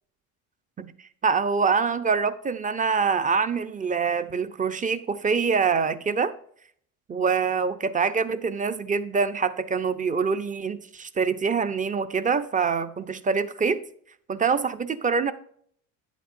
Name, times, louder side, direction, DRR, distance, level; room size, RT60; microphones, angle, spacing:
voice 1, 1.2-6.3 7.1-13.8 14.3-15.3, right 5 dB, 20° right, 0.7 m, -25 dB
10.0 x 8.3 x 2.6 m
supercardioid pair, 95°, 38 cm